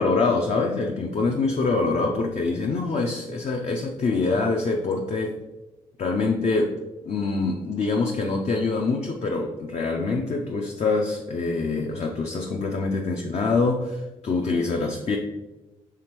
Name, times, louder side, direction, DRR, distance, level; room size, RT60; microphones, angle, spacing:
voice 1, 0.0-5.4 6.0-15.2, left 3 dB, 45° left, 1 dB, 0.5 m, -25 dB
4.8 x 3.3 x 3.0 m, 1.1 s
hypercardioid pair, 45°, 15 cm